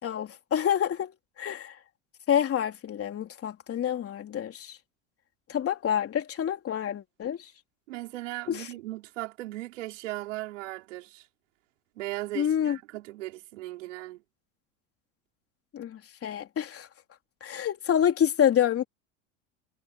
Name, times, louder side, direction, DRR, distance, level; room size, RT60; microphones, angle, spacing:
voice 1, 0.0-1.1 1.4-1.7 2.3-4.8 5.5-7.4 8.5-8.7 12.4-12.8 15.7-16.9 17.4-18.8, left 9 dB, 40° left, 3.7 m, -27 dB
voice 2, 7.9-11.3 12.0-14.2, right 17 dB, 80° right, 5.1 m, -37 dB
hypercardioid pair, 90°, 37 cm